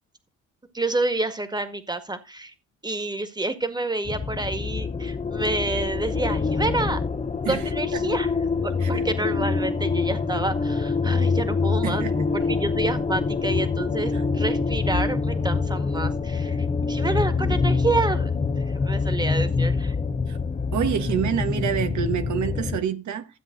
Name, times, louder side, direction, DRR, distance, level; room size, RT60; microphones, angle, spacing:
voice 1, 0.7-2.5 2.8-7.0 7.5-8.3 8.6-12.1 12.3-18.3 18.6-20.0, right 2 dB, 15° right, 1.9 m, -28 dB
sound 1, 4.0-22.8, left 4 dB, 25° left, 1.0 m, -25 dB
voice 2, 11.8-12.2 20.3-20.4 20.7-23.3, right 9 dB, 70° right, 1.4 m, -27 dB
13.5 x 7.7 x 3.9 m
cardioid pair, 90°, 30 cm